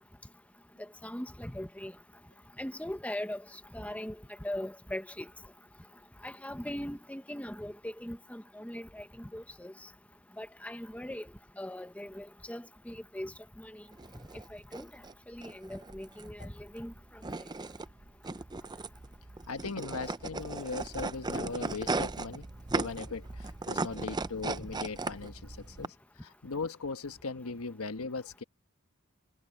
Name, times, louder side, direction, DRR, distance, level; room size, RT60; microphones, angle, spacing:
voice 1, 1.0-1.9 2.6-3.4 3.7-4.1 4.4-5.3 6.2-9.7 10.4-11.3 11.6-13.8 14.5-14.9 15.3-16.9, left 1 dB, 5° left, 1.1 m, -40 dB
sound 1, 13.9-25.9, right 3 dB, 20° right, 0.6 m, -37 dB
voice 2, 19.5-22.5 22.7-28.4, left 4 dB, 80° left, 1.3 m, -39 dB
head